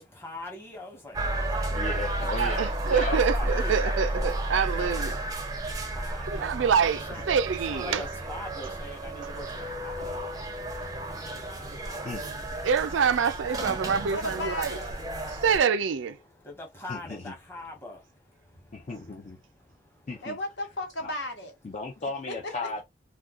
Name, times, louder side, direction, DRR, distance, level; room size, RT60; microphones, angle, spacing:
voice 1, 0.0-2.4 3.1-7.3 7.5-12.7 15.0-15.4 16.1-20.3, left 2 dB, 15° left, 1.0 m, -45 dB
sound 1, 1.1-15.6, right 1 dB, 20° right, 0.5 m, -32 dB
voice 2, 1.7-3.2 12.0-12.2 16.9-17.2 18.7-19.4 20.1-20.4 21.0-21.1 21.6-22.8, left 3 dB, 40° left, 0.4 m, -35 dB
voice 3, 2.3-5.1 6.3-8.0 12.6-14.8 15.3-16.2, right 6 dB, 85° right, 0.4 m, -26 dB
voice 4, 14.1-14.9 20.2-21.5 22.3-22.5, left 1 dB, 70° left, 1.0 m, -34 dB
2.4 x 2.3 x 3.6 m
head